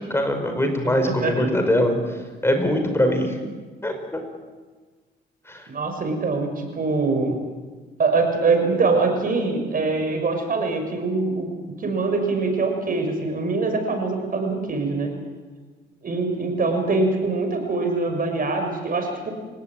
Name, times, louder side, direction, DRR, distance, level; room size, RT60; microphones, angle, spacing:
voice 1, 0.1-3.4 3.8-4.2 5.5-5.7, left 1 dB, 10° left, 6 dB, 4.9 m, -22 dB
voice 2, 1.0-1.5 5.7-7.4 8.0-11.5 11.8-15.1 16.0-19.3, right 3 dB, 45° right, 5 dB, 6.2 m, -23 dB
29.5 x 17.0 x 8.9 m, 1.4 s
cardioid pair, 90°, 20 cm